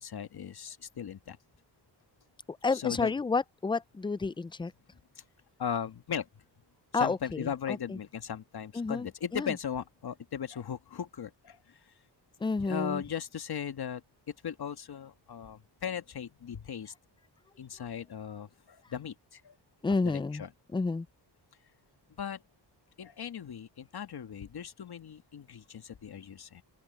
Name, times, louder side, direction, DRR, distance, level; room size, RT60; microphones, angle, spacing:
voice 1, 0.0-1.4 2.7-3.1 5.6-6.3 6.9-11.6 12.7-14.0 14.4-16.9 17.6-19.5 20.0-20.5 22.2-22.4 23.0-26.6, left 8 dB, 60° left, 1.5 m, -37 dB
voice 2, 2.6-4.7 6.9-8.0 8.7-9.1 9.3-9.5 12.4-13.0 19.8-20.4 20.7-21.1, left 4 dB, 15° left, 0.3 m, -30 dB
wide cardioid pair, 110°, 43 cm